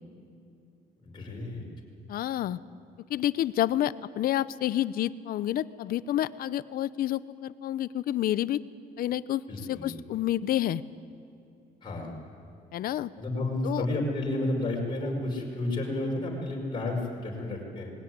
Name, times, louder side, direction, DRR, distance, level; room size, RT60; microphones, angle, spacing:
voice 1, 1.0-1.6 9.5-9.9 11.8-12.2 13.2-17.9, left 1 dB, 30° left, -2 dB, 5.3 m, -31 dB
voice 2, 2.1-2.6 3.1-8.6 9.0-9.4 9.7-10.8 12.7-13.1 13.6-13.9, left 12 dB, 60° left, 17 dB, 0.6 m, -29 dB
20.5 x 17.0 x 9.6 m, 2.6 s
cardioid pair, 110°, 17 cm